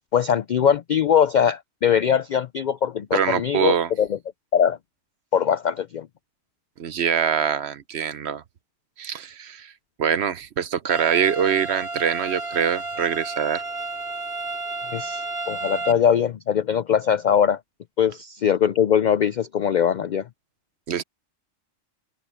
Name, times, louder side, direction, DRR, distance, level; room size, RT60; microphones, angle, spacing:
voice 1, 0.1-4.2 4.5-4.8 5.3-6.1 14.9-17.6 18.0-20.3, left 8 dB, 80° left, 0.4 m, -21 dB
voice 2, 3.1-3.9 6.8-8.4 9.0-9.7 10.0-13.6 20.9-21.0, right 8 dB, 60° right, 1.0 m, -24 dB
sound 1, 10.9-15.9, right 3 dB, 40° right, 3.0 m, -32 dB
open air
omnidirectional pair, 1.3 m